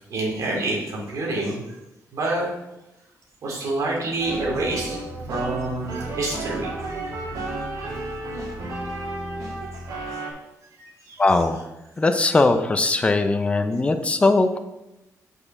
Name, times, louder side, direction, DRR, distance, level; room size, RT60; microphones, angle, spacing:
voice 1, 0.1-1.6 2.1-2.4 3.4-5.0 5.3-7.3 7.7-7.9 8.3-8.4 10.2-10.3 10.8-11.2, right 2 dB, 60° right, -2 dB, 2.8 m, -28 dB
sound 1, 4.2-10.3, right 2 dB, 85° right, 2.5 m, -32 dB
voice 2, 11.2-11.6 12.0-14.6, left 3 dB, 20° left, 8 dB, 0.6 m, -20 dB
6.4 x 5.6 x 6.0 m, 0.95 s
wide cardioid pair, 145°, 6 cm